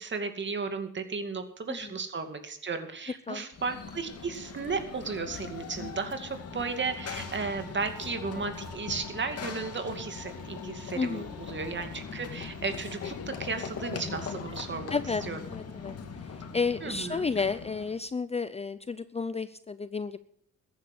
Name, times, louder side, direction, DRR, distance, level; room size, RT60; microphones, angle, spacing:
voice 1, 0.0-13.1 13.4-15.0 15.3-15.4 16.8-17.3, right 4 dB, 40° right, 7 dB, 2.5 m, -34 dB
Run / Train, 3.5-18.0, left 5 dB, 50° left, 2.5 m, -40 dB
voice 2, 10.9-11.3 14.9-15.2 15.5-15.9 16.2-20.2, left 4 dB, 20° left, 14 dB, 0.6 m, -32 dB
14.0 x 10.5 x 6.2 m, 0.69 s
cardioid pair, 90°, 30 cm